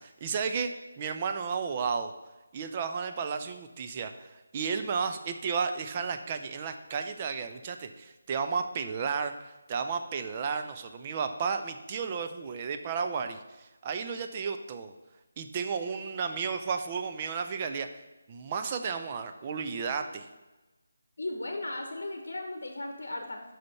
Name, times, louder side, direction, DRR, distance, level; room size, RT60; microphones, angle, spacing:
voice 1, 0.0-2.1 2.5-14.9 15.4-17.9 18.3-20.3, right 5 dB, 25° right, 7 dB, 0.5 m, -33 dB
voice 2, 21.2-23.4, left 2 dB, 60° left, 4 dB, 0.9 m, -36 dB
5.7 x 5.1 x 5.4 m, 1.1 s
figure-of-eight pair, 155°, 0 cm